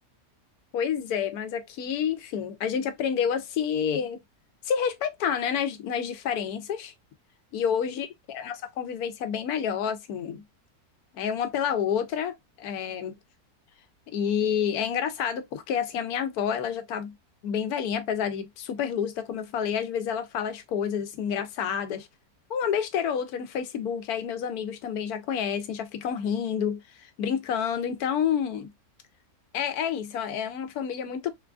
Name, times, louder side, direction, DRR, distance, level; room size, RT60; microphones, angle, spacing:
voice 1, 0.7-4.2 4.6-6.9 7.5-10.4 11.1-13.2 14.1-17.1 17.4-22.1 22.5-28.7 29.5-31.3, left 8 dB, 80° left, 1.1 m, -29 dB
3.7 x 2.4 x 2.3 m
omnidirectional pair, 1.6 m